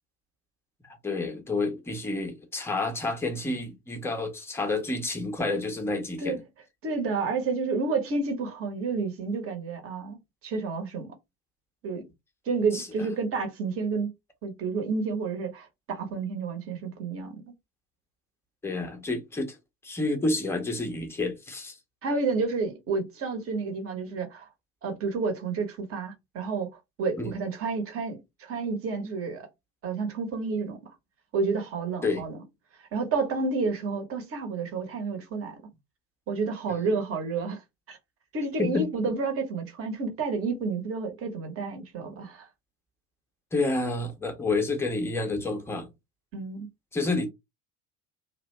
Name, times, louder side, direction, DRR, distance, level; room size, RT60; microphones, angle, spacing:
voice 1, 1.0-6.4 12.7-13.1 18.6-19.6 19.8-21.8 27.2-27.4 32.0-32.2 36.7-36.8 38.6-38.9 43.5-45.9 46.9-47.3, left 2 dB, 5° left, 0.5 m, -29 dB
voice 2, 6.8-11.1 11.8-12.0 12.5-14.1 14.4-17.4 22.0-24.5 24.8-26.7 27.0-29.5 29.8-30.8 31.3-32.4 32.9-35.6 36.3-37.6 37.9-38.0 38.3-42.5 46.3-46.7, right 4 dB, 30° right, 0.8 m, -30 dB
2.6 x 2.1 x 3.1 m
figure-of-eight pair, 70°, 47 cm